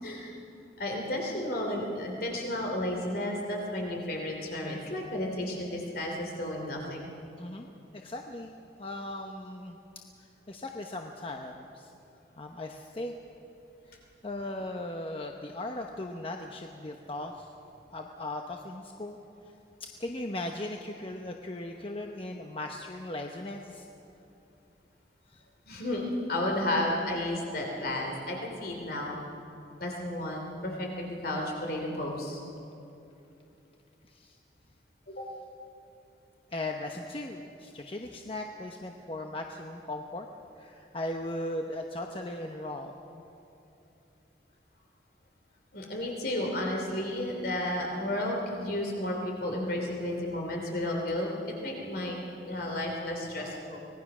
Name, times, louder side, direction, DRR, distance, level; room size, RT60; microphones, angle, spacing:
voice 1, 0.0-0.3 0.8-7.1 25.6-29.2 29.8-32.4 35.1-35.3 45.7-53.8, left 1 dB, 55° left, 0 dB, 3.1 m, -32 dB
voice 2, 7.4-9.8 10.5-11.9 12.4-13.1 13.9-14.0 14.2-17.5 17.9-19.2 19.8-23.9 25.3-25.4 34.1-34.4 36.5-40.3 40.6-43.2, left 1 dB, 30° left, 3 dB, 0.9 m, -38 dB
25.0 x 19.5 x 6.2 m, 2.8 s
head